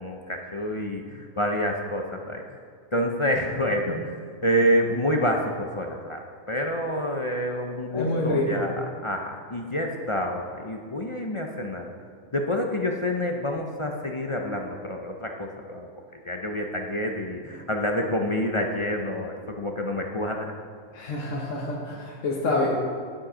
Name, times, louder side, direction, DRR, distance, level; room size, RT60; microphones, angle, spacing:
voice 1, 0.0-2.4 2.9-6.2 6.5-11.9 12.3-15.9 16.3-20.5, equal, 35° left, 2 dB, 0.5 m, -28 dB
voice 2, 7.9-8.7 20.9-22.7, left 2 dB, 65° left, -4 dB, 1.6 m, -27 dB
10.0 x 7.7 x 5.0 m, 2.1 s
omnidirectional pair, 1.4 m